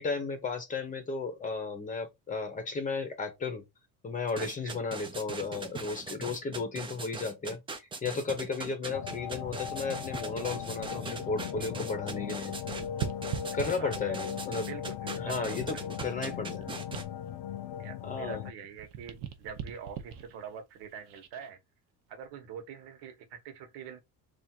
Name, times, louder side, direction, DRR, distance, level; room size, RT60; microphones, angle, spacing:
voice 1, 0.0-3.6 4.0-12.6 13.5-14.7 15.2-16.7 18.0-18.4, left 4 dB, 20° left, 0.8 m, -34 dB
sound 1, 4.3-17.0, right 4 dB, 15° right, 0.4 m, -41 dB
voice 2, 4.4-4.7 13.6-14.2 14.6-15.8 17.8-21.6 22.1-24.0, right 7 dB, 80° right, 1.2 m, -44 dB
sound 2, 8.9-18.5, left 10 dB, 70° left, 0.5 m, -38 dB
sound 3, 9.1-11.9 12.2-14.3 14.9-18.4 18.7-21.5 22.1-22.3, right 9 dB, 55° right, 0.8 m, -42 dB
3.5 x 2.5 x 4.3 m
cardioid pair, 170°, 40 cm